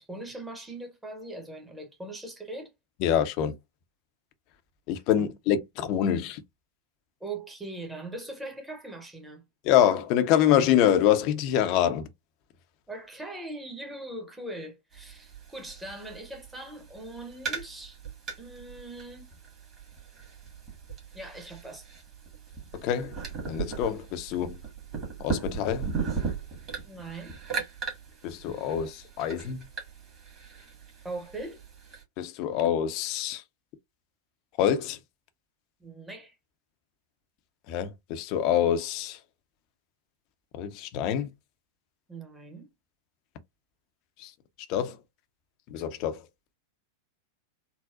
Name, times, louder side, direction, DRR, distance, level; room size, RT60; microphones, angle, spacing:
voice 1, 0.0-2.7 5.2-5.3 7.2-9.4 12.9-18.0 18.4-19.3 21.1-21.9 26.8-27.3 31.0-31.6 35.8-36.4 42.1-42.7, right 2 dB, 5° right, 1.0 m, -40 dB
voice 2, 3.0-3.5 4.9-6.4 9.6-12.1 22.7-23.2 23.4-24.6 25.2-25.9 28.2-29.7 32.2-33.4 34.6-35.0 37.7-39.2 40.5-41.3 44.2-44.3 44.7-45.0 45.7-46.3, left 10 dB, 40° left, 0.6 m, -25 dB
sound 1, 14.9-32.0, right 5 dB, 30° right, 1.7 m, -38 dB
4.0 x 2.0 x 2.5 m
figure-of-eight pair, 90°, 0 cm